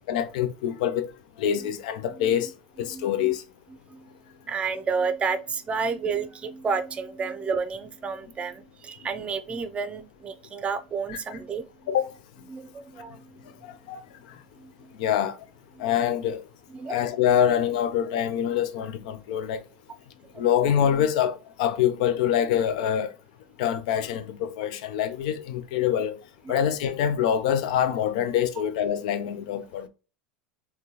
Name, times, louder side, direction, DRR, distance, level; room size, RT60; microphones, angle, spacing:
voice 1, 0.1-1.1 1.4-2.5 2.8-3.4 11.9-12.1 13.6-14.0 15.0-15.3 15.8-16.4 16.9-19.6 20.4-23.1 23.6-26.2 26.5-29.9, left 9 dB, 70° left, 0.5 m, -25 dB
voice 2, 2.9-3.4 3.9-4.1 4.5-11.6 12.5-13.5 14.6-14.9 15.8-15.9 16.7-17.0 20.3-20.4 26.4-26.6, right 5 dB, 25° right, 0.5 m, -31 dB
3.6 x 2.2 x 2.8 m
hypercardioid pair, 95°, 5 cm